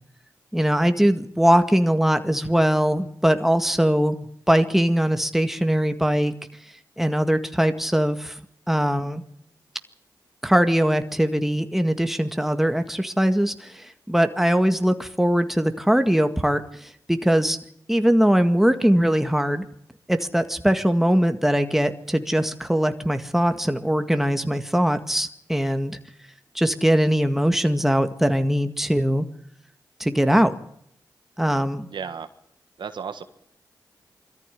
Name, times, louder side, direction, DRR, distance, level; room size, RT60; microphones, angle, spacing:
voice 1, 0.5-6.3 7.0-8.4 8.7-9.2 10.4-17.6 17.9-19.6 20.1-26.0 26.6-29.3 30.0-30.5 31.4-31.9, equal, 5° right, 8 dB, 1.9 m, -21 dB
voice 2, 31.9-32.3 32.8-33.2, right 6 dB, 80° right, 10 dB, 1.4 m, -33 dB
22.0 x 14.0 x 10.0 m, 0.72 s
cardioid pair, 55°, 8 cm